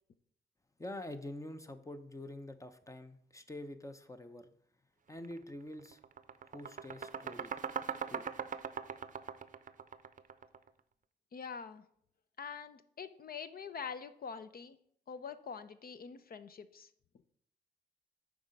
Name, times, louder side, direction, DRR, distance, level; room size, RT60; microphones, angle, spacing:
voice 1, 0.8-4.5 5.1-6.0 6.4-7.5 8.1-8.2, left 1 dB, 15° left, 0.7 m, -46 dB
sound 1, 5.2-5.4 5.7-10.7, right 7 dB, 45° right, 0.6 m, -41 dB
voice 2, 11.3-11.8 12.4-14.8 15.1-16.9, left 6 dB, 55° left, 0.6 m, -45 dB
7.1 x 4.8 x 5.2 m
cardioid pair, 70°, 19 cm